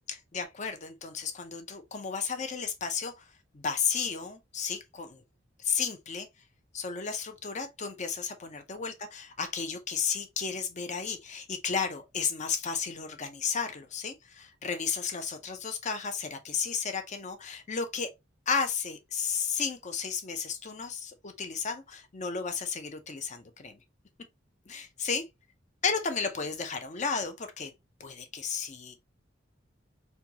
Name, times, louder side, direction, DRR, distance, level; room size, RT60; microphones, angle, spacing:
voice 1, 0.1-3.2 3.5-5.2 5.6-6.3 6.7-18.1 18.5-23.8 24.7-25.2 25.8-27.7 28.0-28.9, left 6 dB, 40° left, 0.7 m, -33 dB
4.3 x 2.3 x 2.8 m
head